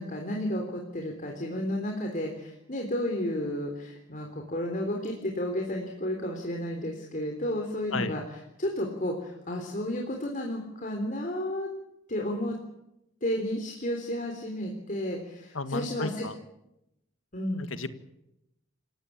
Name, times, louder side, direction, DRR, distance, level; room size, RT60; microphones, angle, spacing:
voice 1, 0.0-8.2 8.6-11.7 12.1-12.6 13.2-16.2 17.3-17.7, left 1 dB, 40° left, 2 dB, 3.7 m, -32 dB
voice 2, 15.5-16.3 17.6-17.9, left 3 dB, 80° left, 11 dB, 1.7 m, -33 dB
28.0 x 17.0 x 8.7 m, 0.86 s
head